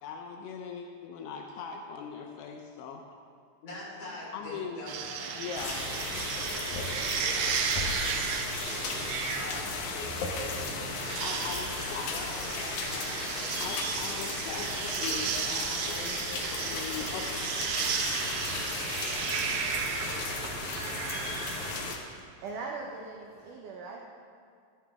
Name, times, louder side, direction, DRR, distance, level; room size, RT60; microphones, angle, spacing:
voice 1, 0.0-3.0 4.3-4.8 5.4-5.8 11.2-12.1 13.6-17.7, left 6 dB, 85° left, 2 dB, 2.8 m, -40 dB
voice 2, 3.6-5.4 7.1-7.6 9.3-10.9 11.8-13.6 19.0-20.5, left 1 dB, 50° left, -7 dB, 5.2 m, -45 dB
sound 1, 4.9-21.9, right 7 dB, 90° right, 2.8 m, -34 dB
sound 2, 5.6-22.0, left 4 dB, 65° left, 1.9 m, -36 dB
sound 3, 9.4-23.5, right 1 dB, 20° right, 1.5 m, -52 dB
voice 3, 22.4-24.0, right 4 dB, 75° right, 0 dB, 1.9 m, -40 dB
14.5 x 12.5 x 3.6 m, 2.2 s
omnidirectional pair, 4.7 m